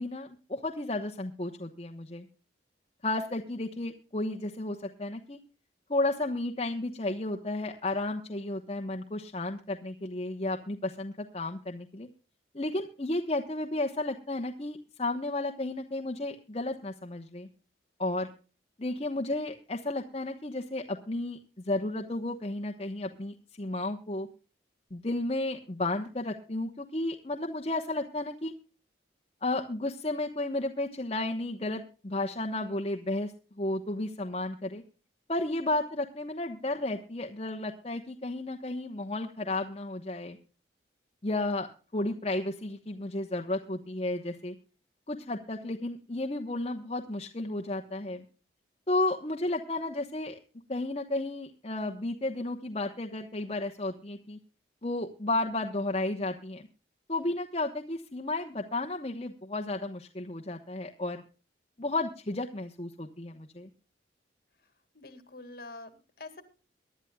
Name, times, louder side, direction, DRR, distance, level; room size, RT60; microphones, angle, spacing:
voice 1, 0.0-2.3 3.0-5.4 5.9-12.1 12.5-17.5 18.0-18.3 18.8-24.3 24.9-28.5 29.4-34.8 35.3-40.4 41.2-41.7 41.9-44.5 45.1-48.2 48.9-50.4 50.7-54.4 54.8-56.7 57.1-61.2 61.8-63.7, left 2 dB, 35° left, 3 dB, 1.0 m, -33 dB
voice 2, 64.9-66.4, left 2 dB, 55° left, 9 dB, 2.1 m, -46 dB
23.5 x 11.5 x 2.3 m, 0.36 s
head